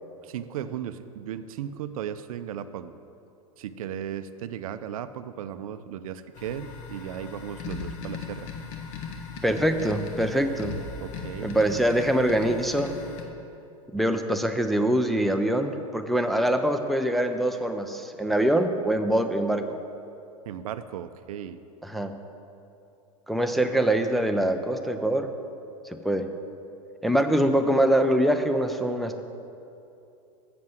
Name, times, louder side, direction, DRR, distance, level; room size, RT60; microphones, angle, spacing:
voice 1, 0.2-3.0 3.6-8.5 11.0-11.6 20.5-21.6, right 9 dB, 70° right, 12 dB, 0.5 m, -36 dB
sound 1, 6.3-13.2, left 5 dB, 55° left, 1.3 m, -38 dB
voice 2, 9.4-10.8 11.4-12.9 13.9-19.8 21.8-22.1 23.3-25.3 25.8-26.3 27.0-29.2, right 1 dB, ahead, 5 dB, 0.5 m, -24 dB
7.4 x 6.7 x 7.6 m, 2.7 s
hypercardioid pair, 105°, 18 cm